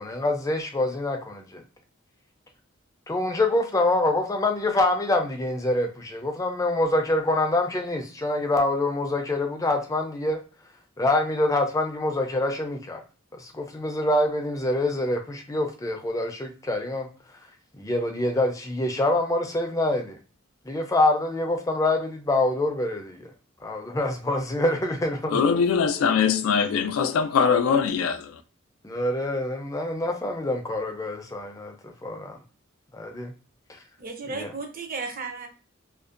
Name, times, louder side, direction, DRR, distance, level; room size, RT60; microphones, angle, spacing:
voice 1, 0.0-1.6 3.1-10.4 11.0-13.0 13.3-17.1 17.8-20.2 20.7-23.3 23.6-25.4 28.8-31.7 32.0-32.4 32.9-33.3 34.4-34.5, left 2 dB, 15° left, 0.4 m, -25 dB
voice 2, 25.3-28.4, left 6 dB, 90° left, 0.3 m, -22 dB
voice 3, 34.0-35.5, right 4 dB, 45° right, 0.5 m, -34 dB
2.5 x 2.1 x 2.4 m
head